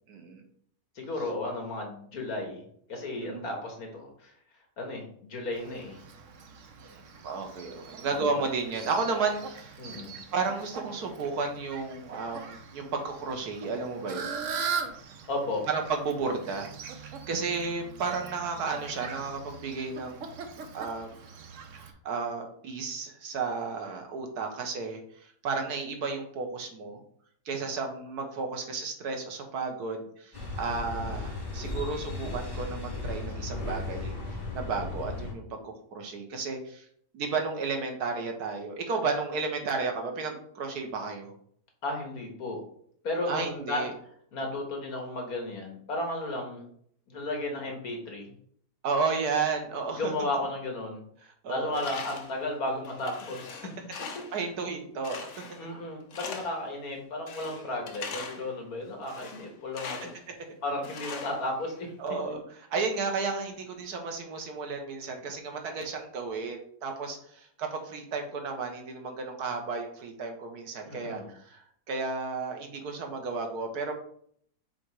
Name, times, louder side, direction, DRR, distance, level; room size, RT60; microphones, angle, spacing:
voice 1, 0.1-0.4 3.1-3.5 7.2-9.8 10.3-14.3 15.7-20.2 20.7-21.1 22.0-25.0 25.4-27.0 27.4-36.8 37.1-41.3 43.2-43.9 48.8-50.1 51.4-51.8 54.3-55.2 57.5-57.8 62.0-62.4 62.7-73.9, right 4 dB, 90° right, 4 dB, 1.6 m, -33 dB
voice 2, 1.0-2.6 2.9-4.3 4.8-6.0 8.0-8.1 9.8-10.2 15.3-15.6 41.8-42.6 43.0-43.9 44.3-46.7 47.1-48.3 50.0-51.0 51.5-53.7 55.6-60.2 60.6-61.9 70.9-71.3, left 2 dB, 75° left, 1 dB, 2.0 m, -34 dB
Fowl, 5.5-21.9, right 6 dB, 60° right, 1.0 m, -41 dB
sound 1, 30.3-35.3, left 2 dB, 30° left, 2.1 m, -36 dB
Tools, 51.7-52.4 52.8-54.4 55.0-55.7 56.1-56.7 57.3-58.5 59.0-60.2 60.8-61.9, left 5 dB, 55° left, 1.0 m, -41 dB
7.0 x 3.0 x 4.7 m, 0.64 s
omnidirectional pair, 1.6 m